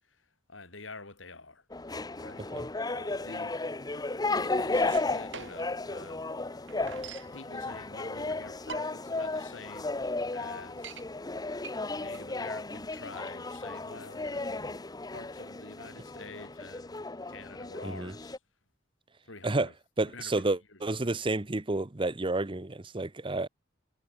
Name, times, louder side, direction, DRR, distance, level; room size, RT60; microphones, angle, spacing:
voice 1, 0.0-1.7 2.2-2.5 2.9-3.6 3.9-6.2 7.3-9.9 10.3-10.9 11.9-18.4 19.2-19.7 20.1-21.2, left 3 dB, 85° left, 6.4 m, -48 dB
sound 1, 1.7-18.4, left 2 dB, 20° left, 0.9 m, -34 dB
sound 2, 4.9-5.8 6.2-6.3 6.4-7.4 8.1-8.2 8.5-9.2 9.7-9.8 10.0-10.1 10.5-11.1 11.6-14.5, right 6 dB, 70° right, 5.4 m, -45 dB
voice 2, 20.0-23.5, right 2 dB, 25° right, 0.9 m, -30 dB
head